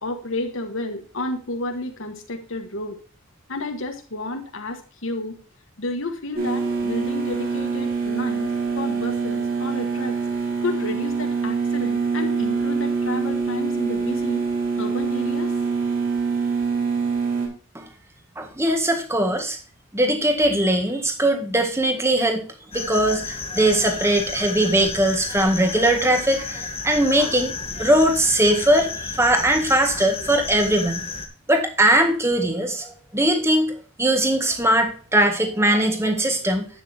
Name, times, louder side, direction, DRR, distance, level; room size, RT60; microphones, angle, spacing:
voice 1, 0.0-3.0 3.5-5.4 5.8-10.2 10.6-14.4 14.8-15.6, left 2 dB, 60° left, 5 dB, 1.4 m, -31 dB
sound 1, 6.4-17.5, right 4 dB, 40° right, 4.5 m, -25 dB
voice 2, 18.3-19.6 19.9-22.5 22.7-27.5 27.8-31.1 31.5-36.7, right 1 dB, 10° right, 4 dB, 1.7 m, -20 dB
sound 2, 22.7-31.3, left 4 dB, 25° left, 1.4 m, -32 dB
11.5 x 8.7 x 2.8 m, 0.37 s
head